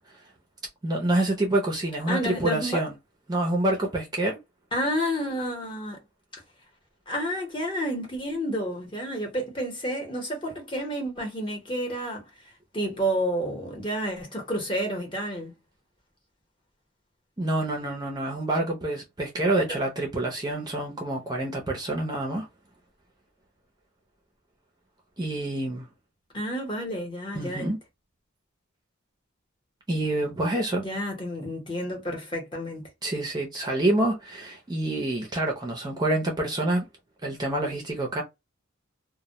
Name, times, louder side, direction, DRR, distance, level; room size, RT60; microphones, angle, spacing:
voice 1, 0.8-2.9 3.3-4.4 17.4-22.5 25.2-25.9 27.3-27.8 29.9-30.8 33.0-36.8 37.2-38.2, right 1 dB, 20° right, 0.5 m, -27 dB
voice 2, 2.0-2.8 4.7-6.0 7.1-12.3 12.7-15.5 19.6-19.8 26.3-27.7 30.8-32.9, equal, 25° left, 0.8 m, -30 dB
2.1 x 2.1 x 2.7 m
head